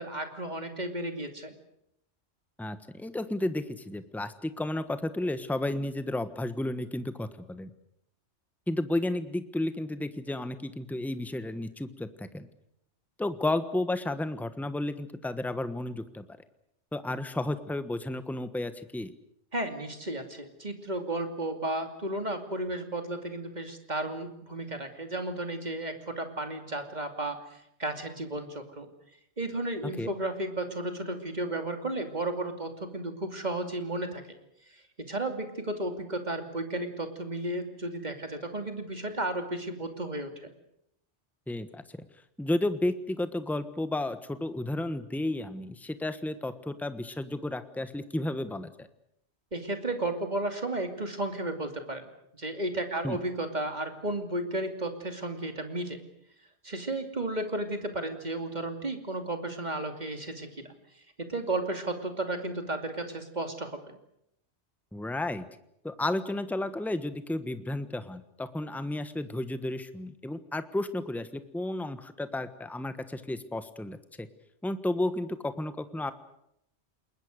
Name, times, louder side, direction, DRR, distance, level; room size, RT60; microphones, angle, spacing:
voice 1, 0.0-1.5 19.5-28.9 29.4-34.2 34.7-40.5 49.5-52.1 52.3-56.0 56.6-60.7 61.2-64.0, right 1 dB, 40° right, 6 dB, 2.9 m, -33 dB
voice 2, 2.6-7.7 8.7-12.5 13.2-16.3 16.9-19.1 30.0-30.1 41.5-41.8 42.4-48.9 53.0-53.2 64.9-65.4 65.8-74.3 74.6-76.1, left 1 dB, ahead, 11 dB, 1.2 m, -32 dB
29.0 x 21.0 x 6.6 m, 0.76 s
omnidirectional pair, 1.2 m